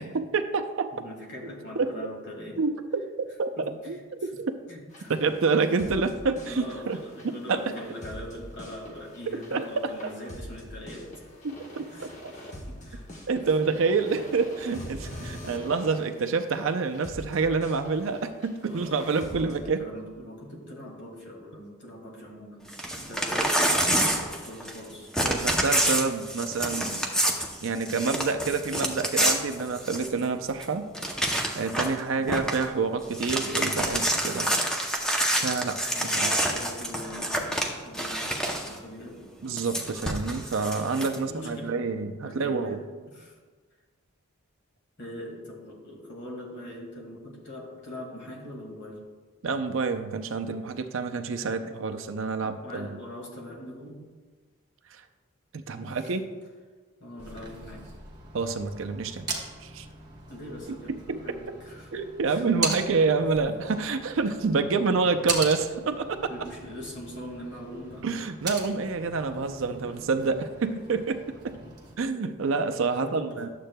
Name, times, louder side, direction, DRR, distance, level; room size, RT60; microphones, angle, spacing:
voice 1, 0.0-1.0 1.8-2.1 2.6-2.7 3.0-4.5 5.1-7.0 7.5-7.6 9.5-9.9 11.4-11.9 13.3-19.8 25.2-27.0 27.6-30.8 31.5-34.5 35.4-36.3 39.4-42.8 49.4-53.0 54.9-55.0 55.5-56.2 58.3-59.3 59.6-59.9 61.1-61.6 61.9-66.3 68.0-71.5 72.0-73.5, right 4 dB, 65° right, 7 dB, 0.5 m, -28 dB
voice 2, 0.9-2.6 3.6-4.0 4.7-5.1 6.5-11.2 11.9-13.1 13.4-13.8 14.1-14.2 18.7-25.1 32.1-32.3 35.9-39.3 41.2-41.8 42.2-43.4 45.0-49.1 52.4-54.1 55.8-56.2 57.0-57.9 60.3-61.9 62.2-62.4 63.4-63.5 66.3-68.1 69.3-70.0 71.5-71.8 72.8-73.4, left 1 dB, 50° left, -1 dB, 2.0 m, -42 dB
sound 1, 4.9-19.6, equal, 35° left, 1.0 m, -44 dB
Crumpling crinkling / Tearing, 22.7-24.9 25.1-30.2 30.6-30.7 30.9-32.0 32.3-32.6 33.0-38.8 39.6-41.2, right 1 dB, 5° left, 0.6 m, -27 dB
sound 2, 57.2-72.0, right 3 dB, 20° right, 1.2 m, -39 dB
12.0 x 7.5 x 2.2 m, 1.4 s
head